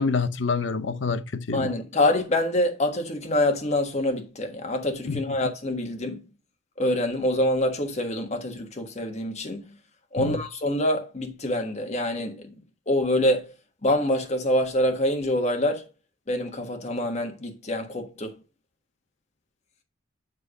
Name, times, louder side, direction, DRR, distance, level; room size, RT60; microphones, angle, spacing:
voice 1, 0.0-1.7 5.1-5.4 10.2-10.4, left 4 dB, 70° left, 0.7 m, -27 dB
voice 2, 1.5-6.2 6.8-9.7 10.1-12.5 12.9-13.5 13.8-15.9 16.3-18.3, left 1 dB, 35° left, 1.4 m, -26 dB
7.5 x 3.3 x 6.2 m
head